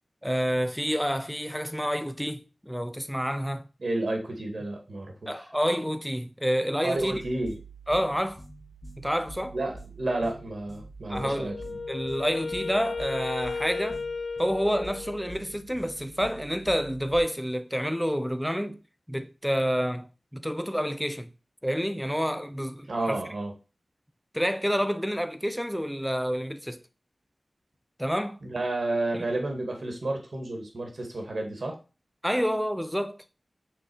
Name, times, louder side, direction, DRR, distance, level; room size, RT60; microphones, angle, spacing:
voice 1, 0.2-3.6 5.3-7.2 7.9-8.4 9.0-9.6 11.1-11.5 11.9-14.0 14.4-18.8 19.1-21.3 21.6-23.2 24.3-26.8 28.0-28.4 29.1-29.2 32.2-33.2, equal, ahead, 0.8 m, -28 dB
voice 2, 3.8-5.3 6.8-7.6 9.5-11.6 22.9-23.5 28.4-31.8, right 2 dB, 70° right, 2.3 m, -31 dB
sound 1, 7.0-17.2, right 2 dB, 15° left, 1.5 m, -46 dB
Wind instrument woodwind instrument, 11.1-15.5, left 4 dB, 70° left, 0.6 m, -34 dB
6.3 x 4.1 x 6.3 m
wide cardioid pair, 80°, 0 cm